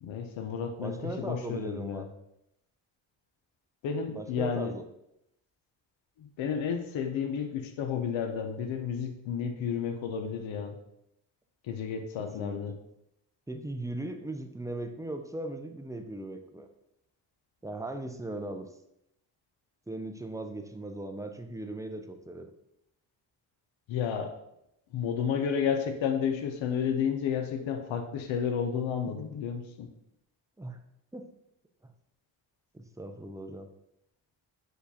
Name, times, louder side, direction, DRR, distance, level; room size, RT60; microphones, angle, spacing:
voice 1, 0.0-2.0 3.8-4.8 6.2-10.8 11.6-12.7 23.9-24.3 24.9-29.9, left 7 dB, 75° left, 6 dB, 0.6 m, -31 dB
voice 2, 0.8-2.0 4.2-4.8 12.2-12.6 13.5-16.7 17.6-18.7 19.9-22.5 30.6-30.8 31.1-31.3 31.8-31.9 32.7-33.7, right 2 dB, 10° right, 5 dB, 0.4 m, -38 dB
6.6 x 2.4 x 2.7 m, 0.81 s
supercardioid pair, 50°, 47 cm